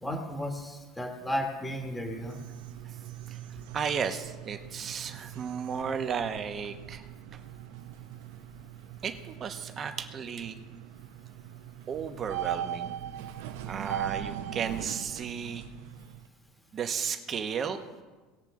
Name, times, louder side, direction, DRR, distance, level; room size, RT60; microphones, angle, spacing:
voice 1, 0.0-2.4, equal, 5° left, 2 dB, 1.2 m, -34 dB
sound 1, 1.9-16.3, right 10 dB, 85° right, 0.7 m, -40 dB
voice 2, 3.7-7.0 7.3-7.4 9.0-10.6 11.9-12.9 13.7-15.6 16.7-17.8, right 7 dB, 30° right, 7 dB, 0.9 m, -34 dB
19.0 x 7.3 x 3.6 m, 1.3 s
cardioid pair, 150°, 0 cm